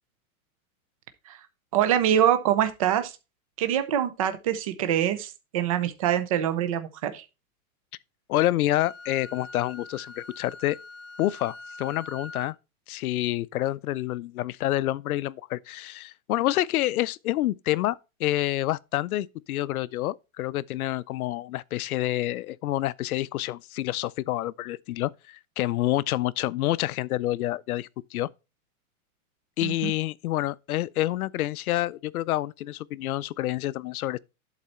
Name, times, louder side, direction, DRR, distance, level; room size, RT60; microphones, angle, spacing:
voice 1, 1.7-3.1 3.6-7.2 29.6-29.9, right 10 dB, 25° right, 0.5 m, -25 dB
voice 2, 8.3-10.8 11.2-12.5 12.9-28.3 29.6-34.2, left 15 dB, 75° left, 0.6 m, -28 dB
Wind instrument woodwind instrument, 8.7-12.5, left 3 dB, 20° left, 1.0 m, -43 dB
11.0 x 4.1 x 4.3 m
supercardioid pair, 175°, 44 cm